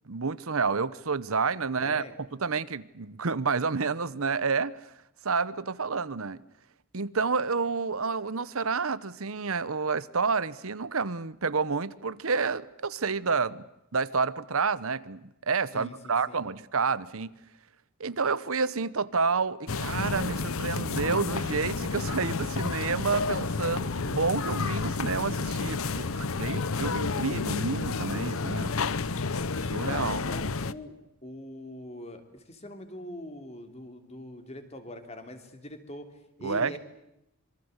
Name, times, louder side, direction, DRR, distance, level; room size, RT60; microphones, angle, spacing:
voice 1, 0.1-2.0 2.4-4.8 5.2-6.4 6.9-13.6 13.9-17.3 18.0-28.7 29.7-30.2 36.4-36.8, right 4 dB, 70° right, 1.0 m, -29 dB
voice 2, 1.8-2.1 15.7-16.5 25.8-26.2 30.2-31.0 31.2-36.8, left 1 dB, 30° left, 3.2 m, -43 dB
sound 1, 19.7-30.7, left 4 dB, 70° left, 0.9 m, -30 dB
26.5 x 24.0 x 8.1 m
head